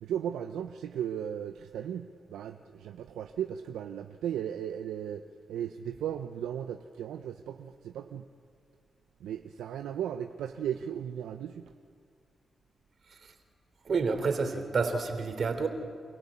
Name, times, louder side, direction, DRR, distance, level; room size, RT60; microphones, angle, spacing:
voice 1, 0.0-8.3 9.2-11.7, right 9 dB, 90° right, 7 dB, 0.7 m, -36 dB
voice 2, 13.8-15.7, right 4 dB, 65° right, 7 dB, 3.3 m, -29 dB
29.0 x 16.0 x 8.6 m, 2.3 s
supercardioid pair, 45°, 0 cm